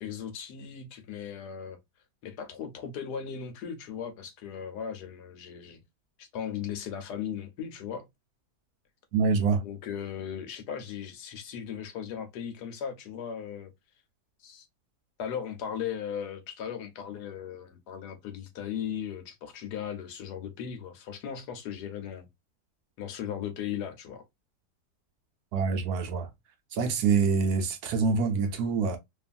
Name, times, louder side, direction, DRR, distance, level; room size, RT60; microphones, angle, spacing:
voice 1, 0.0-1.8 2.2-5.8 6.2-8.1 9.6-13.7 14.4-14.7 15.2-22.3 23.0-24.3, left 8 dB, 75° left, 1.2 m, -37 dB
voice 2, 9.1-9.6 25.5-26.3 26.7-29.0, right 5 dB, 70° right, 1.1 m, -25 dB
2.9 x 2.5 x 2.4 m
omnidirectional pair, 1.8 m